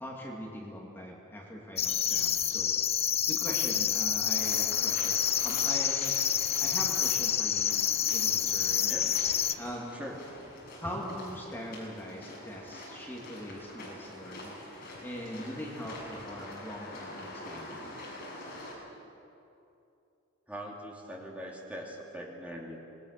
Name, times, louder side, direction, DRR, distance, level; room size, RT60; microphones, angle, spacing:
voice 1, 0.0-6.1 6.6-7.8 8.1-8.9 9.6-10.0 10.8-17.9, equal, 10° left, -3 dB, 2.5 m, -42 dB
sound 1, 1.8-9.5, left 9 dB, 30° left, 0.6 m, -28 dB
sound 2, 4.3-18.7, left 1 dB, 45° left, 6.6 m, -45 dB
voice 2, 6.6-6.9 8.9-9.1 9.9-10.2 10.8-10.9 20.5-22.8, equal, 5° right, -2 dB, 2.7 m, -42 dB
26.5 x 20.0 x 6.7 m, 2.8 s
head